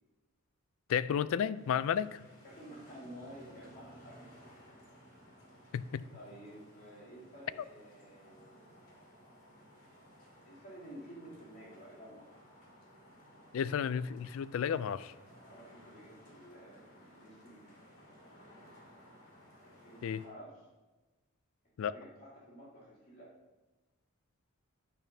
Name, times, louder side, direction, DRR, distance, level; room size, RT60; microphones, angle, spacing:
voice 1, 0.9-2.2 5.7-6.0 13.5-15.1 20.0-20.2 21.8-22.0, left 8 dB, 65° left, 17 dB, 0.3 m, -32 dB
sound 1, 1.5-20.3, equal, 85° left, 2.5 m, -58 dB
voice 2, 2.4-4.4 5.4-5.7 6.1-8.6 10.4-12.4 15.4-17.6 19.6-20.6 21.8-23.3, equal, 50° left, -7 dB, 2.9 m, -52 dB
10.5 x 8.9 x 2.7 m, 1.2 s
head